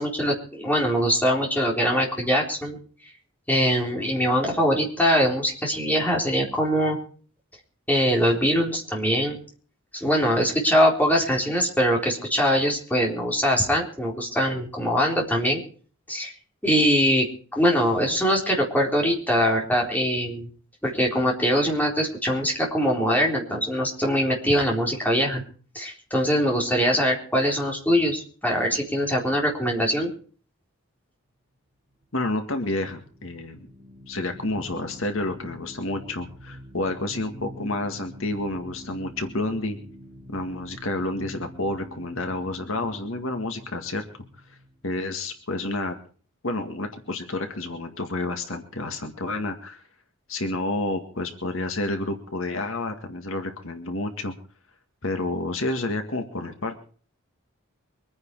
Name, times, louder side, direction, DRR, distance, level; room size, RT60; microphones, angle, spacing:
voice 1, 0.0-2.8 3.5-7.0 7.9-9.4 10.0-15.6 16.1-16.3 16.6-17.3 17.5-20.5 20.8-25.4 25.7-30.1, equal, 10° left, -1 dB, 3.9 m, -22 dB
sound 1, 32.0-45.3, equal, 35° right, 5.5 m, -46 dB
voice 2, 32.1-33.7 34.1-39.8 40.3-44.0 44.8-46.0 46.4-49.8 50.3-54.3 55.0-56.7, left 2 dB, 70° left, 6 dB, 2.0 m, -29 dB
24.0 x 9.7 x 4.8 m, 0.43 s
head